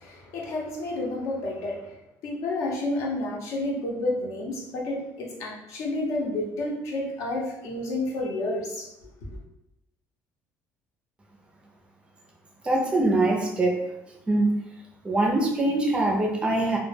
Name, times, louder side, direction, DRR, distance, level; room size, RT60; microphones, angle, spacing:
voice 1, 0.0-2.0 2.2-8.9, left 2 dB, 65° left, -2 dB, 0.7 m, -30 dB
voice 2, 12.6-13.8 14.3-14.6 15.0-16.8, right 2 dB, 20° right, 0 dB, 0.4 m, -23 dB
2.2 x 2.1 x 3.2 m, 0.85 s
cardioid pair, 145°, 6 cm